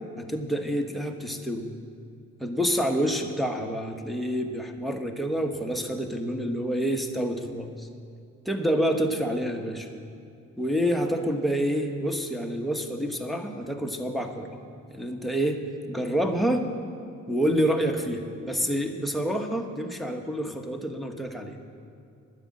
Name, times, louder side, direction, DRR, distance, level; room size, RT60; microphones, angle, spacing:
voice 1, 0.2-1.7 2.4-7.9 8.4-9.9 10.6-14.6 14.9-15.6 15.9-16.6 17.3-21.6, equal, ahead, 4 dB, 1.2 m, -28 dB
10.0 x 7.6 x 9.5 m, 2.4 s
cardioid pair, 90°, 30 cm